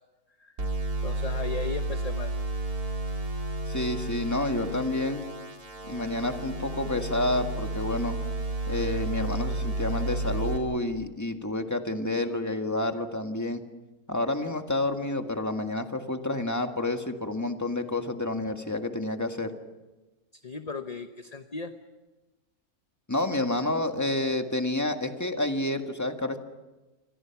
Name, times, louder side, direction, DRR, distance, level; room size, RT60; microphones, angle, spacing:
sound 1, 0.6-10.6, right 2 dB, 85° right, 4.4 m, -32 dB
voice 1, 1.0-2.3 20.3-21.7, left 4 dB, 30° left, 7 dB, 0.9 m, -36 dB
voice 2, 3.7-5.2 5.9-8.2 8.7-13.6 14.1-19.5 23.1-26.4, left 2 dB, 10° left, 5 dB, 1.7 m, -29 dB
28.5 x 25.0 x 6.0 m, 1.1 s
omnidirectional pair, 1.6 m